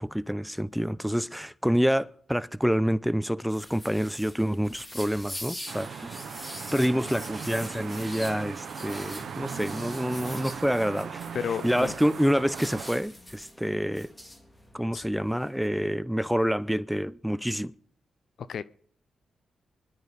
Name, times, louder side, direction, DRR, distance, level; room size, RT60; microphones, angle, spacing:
voice 1, 0.0-6.2 6.7-11.2 11.6-14.1 14.7-17.7, equal, ahead, 0.6 m, -27 dB
Industrial Blue foam (Noise), 3.5-15.7, left 1 dB, 15° left, 3.5 m, -44 dB
sound 1, 5.7-12.9, right 7 dB, 70° right, 1.0 m, -39 dB
voice 2, 11.3-11.9 14.9-15.0 18.4-18.6, left 7 dB, 70° left, 0.6 m, -32 dB
25.0 x 11.5 x 4.1 m
supercardioid pair, 50°, 0 cm